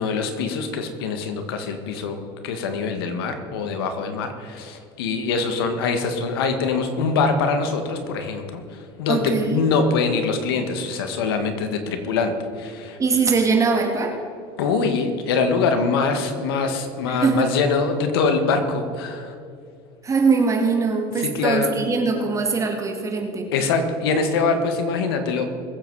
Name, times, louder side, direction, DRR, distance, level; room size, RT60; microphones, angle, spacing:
voice 1, 0.0-2.2 2.4-13.0 14.6-19.3 21.2-21.7 23.5-25.5, left 4 dB, 90° left, 6 dB, 1.7 m, -23 dB
voice 2, 9.1-9.6 13.0-14.2 17.1-17.5 20.0-23.5, right 4 dB, 25° right, 2 dB, 2.3 m, -21 dB
22.0 x 7.8 x 4.8 m, 2.4 s
supercardioid pair, 105°, 12 cm